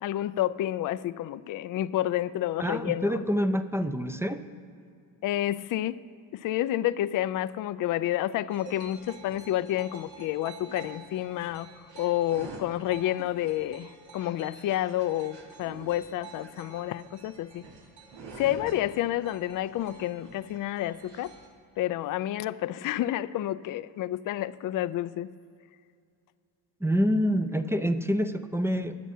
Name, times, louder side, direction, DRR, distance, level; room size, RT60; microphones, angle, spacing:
voice 1, 0.0-3.2 5.2-6.0 6.3-11.7 12.0-17.7 18.4-21.3 21.8-25.3, left 13 dB, 45° left, 15 dB, 0.4 m, -29 dB
voice 2, 2.6-4.4 26.8-29.0, equal, 5° right, 9 dB, 0.5 m, -27 dB
sound 1, 8.5-21.5, right 4 dB, 65° right, 1.6 m, -47 dB
20.5 x 7.2 x 2.8 m, 2.3 s
supercardioid pair, 60°, 48 cm